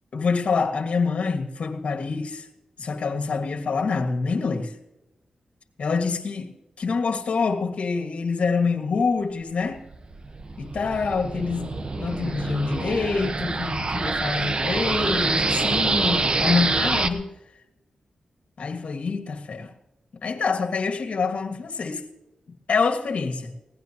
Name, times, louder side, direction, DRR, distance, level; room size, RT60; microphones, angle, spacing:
voice 1, 0.1-2.5 2.8-4.7 5.8-9.8 10.6-17.3 18.6-19.7 20.2-22.1 22.7-23.5, left 4 dB, 70° left, 4 dB, 2.0 m, -26 dB
sound 1, 9.8-17.1, right 3 dB, 45° right, 1.2 m, -26 dB
20.0 x 17.5 x 3.0 m, 0.97 s
cardioid pair, 55°, 2 cm